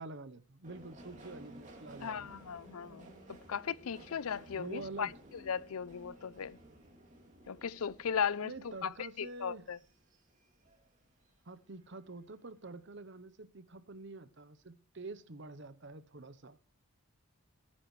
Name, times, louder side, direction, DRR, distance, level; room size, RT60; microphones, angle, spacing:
voice 1, 0.0-2.3 4.6-5.1 8.4-9.6 11.5-16.6, right 3 dB, 50° right, 0.9 m, -47 dB
Subway metro underground, 0.6-11.4 11.7-12.4 12.7-12.8, right 1 dB, 35° right, 2.8 m, -56 dB
voice 2, 2.0-5.1 5.5-6.6 7.5-9.8, left 7 dB, 75° left, 0.5 m, -37 dB
21.0 x 9.7 x 3.2 m
head